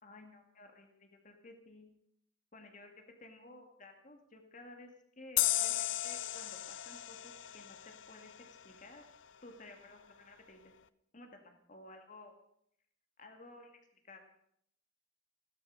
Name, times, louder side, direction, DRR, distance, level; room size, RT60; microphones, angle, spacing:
voice 1, 0.0-1.9 2.5-9.1 9.4-10.7 11.1-12.4 13.2-13.7 14.0-14.3, left 2 dB, 40° left, 4 dB, 2.2 m, -55 dB
sound 1, 5.4-8.7, left 15 dB, 70° left, 0.6 m, -35 dB
15.0 x 12.5 x 6.4 m, 0.70 s
head